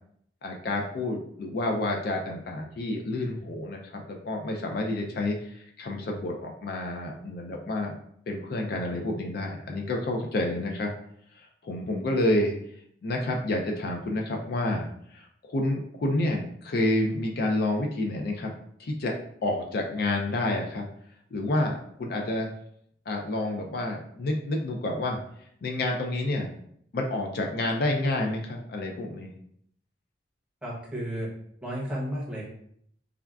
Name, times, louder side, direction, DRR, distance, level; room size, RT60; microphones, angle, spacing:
voice 1, 0.4-7.9 8.3-10.9 11.4-12.5 13.0-18.5 18.8-19.1 19.4-20.8 21.3-22.5 23.1-25.2 25.6-26.5 26.9-29.3, left 1 dB, 55° left, 1 dB, 0.4 m, -29 dB
voice 2, 30.6-31.3 31.6-32.5, equal, 5° right, -6 dB, 0.7 m, -32 dB
3.6 x 2.2 x 2.3 m, 0.68 s
head